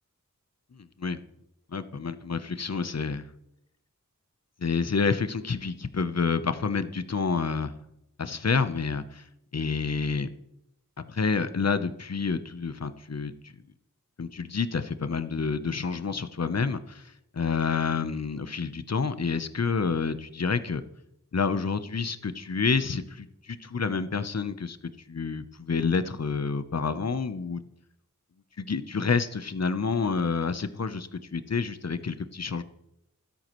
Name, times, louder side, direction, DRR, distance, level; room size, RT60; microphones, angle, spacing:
voice 1, 1.7-3.2 4.6-7.7 8.2-9.2 9.5-10.3 11.1-13.5 14.2-20.8 21.3-24.8 25.1-27.6 28.6-32.6, left 5 dB, 50° left, 12 dB, 0.9 m, -28 dB
16.0 x 13.0 x 3.2 m, 0.81 s
wide cardioid pair, 65°, 33 cm